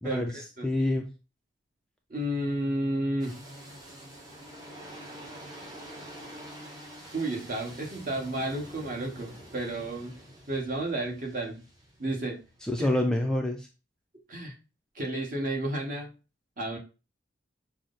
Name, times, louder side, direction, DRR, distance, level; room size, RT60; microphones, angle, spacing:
voice 1, 0.0-1.1 12.6-13.7, left 1 dB, 5° left, 2 dB, 0.3 m, -27 dB
voice 2, 2.1-3.4 7.1-10.2 10.5-11.6 12.0-12.4 12.8-12.9 14.3-14.5 14.9-16.1 16.6-16.8, right 1 dB, 45° right, 0 dB, 1.2 m, -31 dB
sound 1, 3.2-13.0, equal, 20° right, 0.9 m, -47 dB
6.0 x 2.0 x 3.8 m, 0.32 s
head